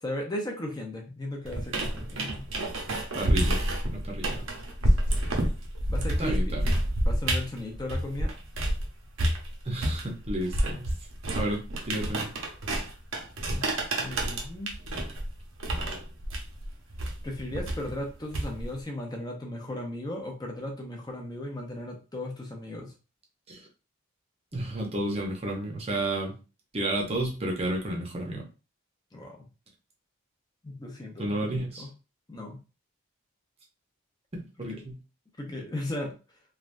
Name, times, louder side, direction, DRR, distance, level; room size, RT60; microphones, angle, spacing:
voice 1, 0.0-2.4 5.9-6.6 7.1-8.3 10.6-10.8 13.4-13.7 14.0-14.7 17.2-22.9 29.1-29.5 30.6-31.9 32.3-32.6 34.6-34.8 35.4-36.1, left 1 dB, 20° left, 1 dB, 0.6 m, -36 dB
sound 1, 1.5-8.8 9.2-18.8, right 1 dB, 70° right, 0.7 m, -29 dB
voice 2, 3.1-4.4 6.2-6.8 9.6-10.9 11.3-12.3 23.5-23.6 24.5-26.3 26.7-28.4 31.2-31.8 34.3-35.0, right 1 dB, 30° right, 0 dB, 0.7 m, -32 dB
3.3 x 2.3 x 2.5 m, 0.32 s
head